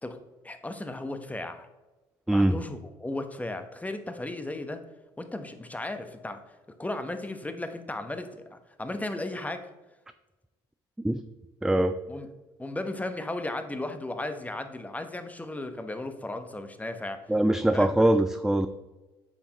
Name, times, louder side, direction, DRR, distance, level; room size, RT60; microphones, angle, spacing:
voice 1, 0.4-1.7 2.3-4.8 5.2-6.4 6.8-9.7 12.1-12.3 12.6-17.2 17.7-17.9, left 2 dB, 10° left, 8 dB, 0.9 m, -35 dB
voice 2, 2.3-2.6 11.0-11.2 11.6-12.0 17.3-18.7, right 1 dB, 5° right, 10 dB, 0.3 m, -22 dB
8.2 x 5.7 x 2.9 m, 1.1 s
hypercardioid pair, 65°, 12 cm